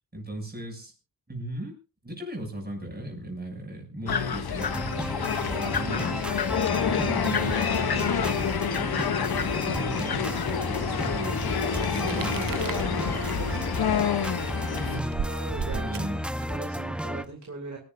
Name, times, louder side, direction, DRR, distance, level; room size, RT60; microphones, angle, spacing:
voice 1, 0.1-0.9 1.3-1.8 2.0-4.8 5.4-6.2 6.8-11.6 11.9-13.1 14.8-16.2, right 1 dB, 25° right, 1 dB, 7.1 m, -37 dB
sound 1, 4.1-15.0, left 7 dB, 90° left, 1.0 m, -28 dB
sound 2, 4.6-17.2, equal, 5° right, 0.9 m, -33 dB
sound 3, 11.5-16.7, right 7 dB, 65° right, 0.8 m, -38 dB
voice 2, 12.0-13.7 15.2-16.1 16.5-17.8, right 3 dB, 50° right, 2 dB, 2.8 m, -38 dB
26.5 x 11.0 x 2.7 m, 0.31 s
wide cardioid pair, 105°, 36 cm